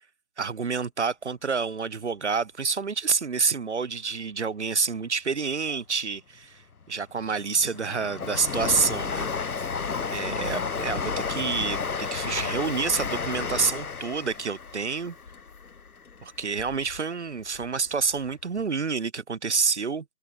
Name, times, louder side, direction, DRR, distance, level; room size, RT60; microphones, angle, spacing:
voice 1, 0.4-6.6 6.9-9.6 10.1-15.1 16.2-20.0, right 5 dB, 45° right, 1.4 m, -28 dB
sound 1, 2.8-11.1 11.7-12.1 12.5-12.9 13.3-13.4 13.7-13.8, right 12 dB, 20° right, 6.9 m, -63 dB
Train, 6.8-17.0 17.4-18.3 18.6-18.7, left 5 dB, 65° left, 1.8 m, -32 dB
open air
figure-of-eight pair, 165°, 48 cm